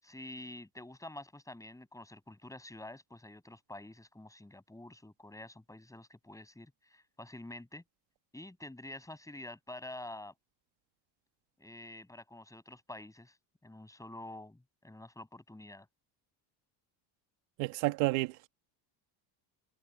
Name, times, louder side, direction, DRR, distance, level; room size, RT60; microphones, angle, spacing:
voice 1, 0.0-7.8 8.3-10.3 11.6-13.4 13.6-15.9, left 1 dB, 5° left, 6.8 m, -48 dB
voice 2, 17.6-18.5, right 20 dB, 90° right, 1.9 m, -30 dB
cardioid pair, 130°, 48 cm